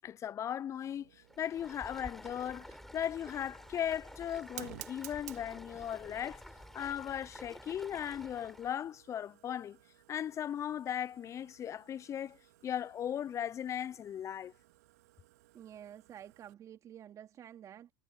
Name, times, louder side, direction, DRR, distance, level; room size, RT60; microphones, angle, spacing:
voice 1, 0.0-2.7 2.9-6.4 6.7-9.8 10.1-14.5, left 10 dB, 35° left, 0.7 m, -37 dB
Fire, 0.8-16.5, right 18 dB, 65° right, 2.9 m, -56 dB
Stream, 1.2-8.8, left 1 dB, 5° left, 6.1 m, -51 dB
voice 2, 15.5-17.9, right 10 dB, 35° right, 3.0 m, -50 dB
figure-of-eight pair, 80°, 9 cm